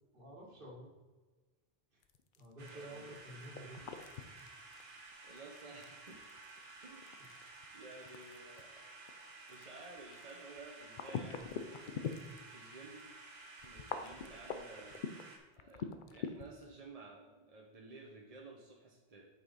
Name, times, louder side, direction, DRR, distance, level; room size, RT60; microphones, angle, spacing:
voice 1, 0.1-0.9 1.9-2.0 2.4-4.0 7.2-7.6, equal, 60° right, -2 dB, 1.9 m, -52 dB
sound 1, 2.0-12.7 13.0-13.1 13.6-16.6, left 7 dB, 60° left, 0.7 m, -43 dB
sound 2, 2.6-15.4, right 3 dB, 80° right, 1.4 m, -54 dB
voice 2, 2.7-3.1 4.7-6.3 6.8-7.2 7.7-8.9 9.5-12.1 12.5-13.1 13.6-15.0 15.6-19.3, right 3 dB, 40° right, -2 dB, 1.0 m, -54 dB
8.3 x 5.5 x 4.1 m, 1.3 s
omnidirectional pair, 1.0 m